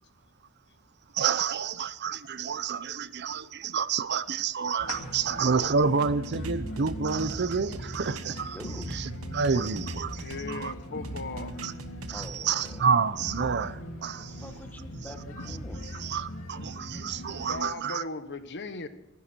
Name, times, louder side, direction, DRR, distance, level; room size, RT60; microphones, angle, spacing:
voice 1, 1.1-8.6 8.9-10.7 11.6-11.7 12.1-14.3 15.9-18.0, right 5 dB, 55° right, 0.6 m, -29 dB
sound 1, 4.8-17.6, equal, 70° left, 2.5 m, -39 dB
sound 2, 6.0-10.7 11.0-12.8, right 2 dB, 80° right, 1.2 m, -43 dB
voice 2, 8.5-8.9 12.1-12.8 14.1-15.9, left 1 dB, 10° left, 1.4 m, -45 dB
voice 3, 10.1-11.6 17.3-18.9, left 3 dB, 55° left, 1.3 m, -38 dB
25.5 x 11.0 x 4.5 m
head